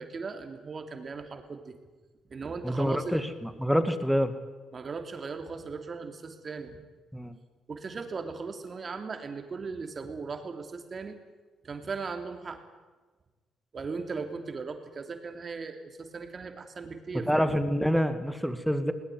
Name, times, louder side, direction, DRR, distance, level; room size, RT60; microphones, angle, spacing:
voice 1, 0.0-1.8 2.3-3.2 4.7-6.8 7.7-11.2 11.6-12.6 13.7-17.5, right 4 dB, 40° right, 6 dB, 3.1 m, -38 dB
voice 2, 2.6-4.3 7.1-7.4 17.3-18.9, equal, ahead, 10 dB, 2.1 m, -27 dB
20.5 x 18.5 x 9.4 m, 1.3 s
supercardioid pair, 70°, 0 cm